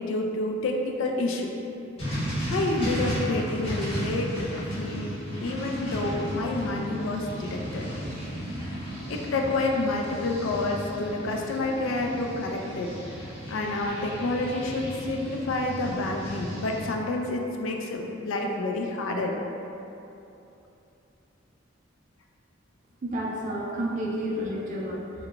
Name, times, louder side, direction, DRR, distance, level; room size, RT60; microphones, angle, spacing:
voice 1, 0.0-1.5 2.5-4.3 4.6-5.1 5.4-7.9 9.1-12.9 13.5-19.4, left 2 dB, 70° left, 1 dB, 0.4 m, -29 dB
sound 1, 2.0-16.9, equal, 30° left, 1.0 m, -34 dB
voice 2, 23.0-25.3, equal, 40° right, -2 dB, 0.3 m, -31 dB
3.9 x 2.1 x 3.3 m, 2.9 s
head